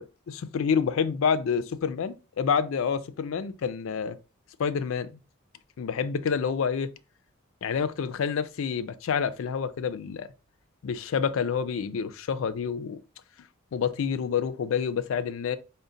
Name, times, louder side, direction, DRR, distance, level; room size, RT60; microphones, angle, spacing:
voice 1, 0.0-4.2 4.6-5.2 5.8-6.9 7.6-10.3 10.8-13.0 13.7-15.6, left 6 dB, 70° left, 0.4 m, -28 dB
3.8 x 2.1 x 3.8 m
head